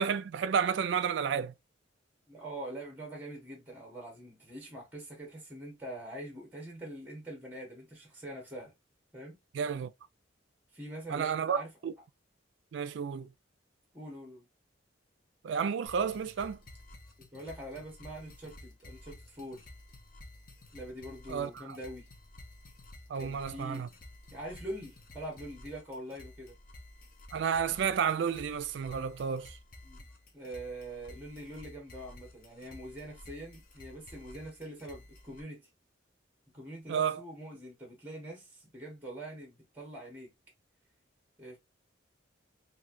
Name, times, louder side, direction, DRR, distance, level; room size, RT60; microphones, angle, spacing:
voice 1, 0.0-1.5 9.5-9.9 11.1-11.9 12.7-13.3 15.4-16.6 21.3-21.8 23.1-23.9 27.3-29.6 36.9-37.2, right 7 dB, 70° right, 0.3 m, -31 dB
voice 2, 2.3-8.7 9.1-9.4 10.7-11.7 13.2-13.3 13.9-14.5 17.2-19.7 20.7-22.1 23.2-23.9 24.3-26.6 29.8-30.0 30.3-35.7 36.5-40.3 41.4-41.6, right 1 dB, 10° right, 1.0 m, -44 dB
sound 1, 15.9-35.4, left 1 dB, 45° left, 0.7 m, -52 dB
3.1 x 2.6 x 2.5 m
head